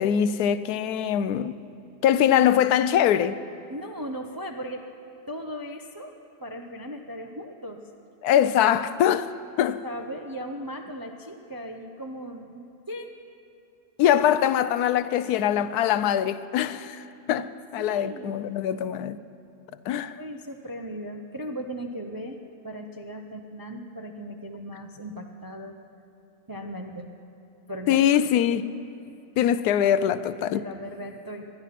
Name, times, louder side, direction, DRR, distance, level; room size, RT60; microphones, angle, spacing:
voice 1, 0.0-1.6 2.0-3.4 8.2-9.3 9.6-9.8 14.0-17.0 17.3-19.2 19.9-20.1 27.9-28.6 29.4-30.7, left 10 dB, 80° left, 1.1 m, -22 dB
voice 2, 3.7-4.8 5.3-6.1 6.4-7.8 9.8-13.1 17.4-17.5 17.8-18.4 19.9-25.8 26.5-27.1 27.7-28.2 30.5-31.5, equal, 30° right, 0.4 m, -37 dB
20.5 x 12.0 x 5.8 m
omnidirectional pair, 1.6 m